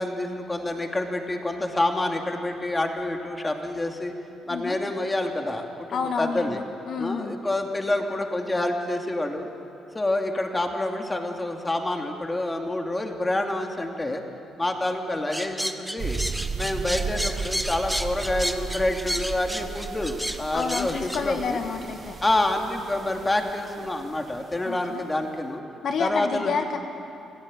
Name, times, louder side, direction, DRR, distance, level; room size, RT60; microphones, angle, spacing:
voice 1, 0.0-4.1 4.5-6.6 7.0-9.5 9.9-14.2 14.6-16.2 16.5-21.6 22.2-25.6 26.0-26.5, left 1 dB, 20° left, 3 dB, 2.6 m, -27 dB
voice 2, 5.9-7.3 20.5-22.2 24.6-25.1 25.8-26.8, left 5 dB, 60° left, 5 dB, 1.4 m, -29 dB
sound 1, 15.3-21.2, equal, ahead, 1.3 m, -31 dB
sound 2, 16.0-24.4, right 5 dB, 45° right, 1.0 m, -35 dB
26.5 x 16.5 x 8.9 m, 2.9 s
cardioid pair, 90°, 0 cm